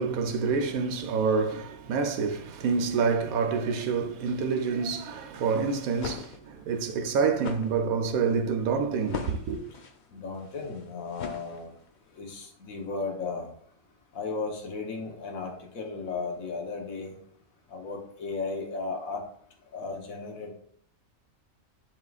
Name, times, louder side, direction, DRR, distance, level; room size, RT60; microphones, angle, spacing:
voice 1, 0.0-9.6, right 5 dB, 85° right, 1.1 m, -27 dB
sound 1, 5.9-12.0, left 5 dB, 50° left, 0.6 m, -41 dB
voice 2, 10.1-11.7 12.1-13.5 14.1-17.1 17.7-19.2 19.7-20.5, left 4 dB, 75° left, 1.5 m, -35 dB
10.5 x 3.7 x 2.4 m
omnidirectional pair, 1.4 m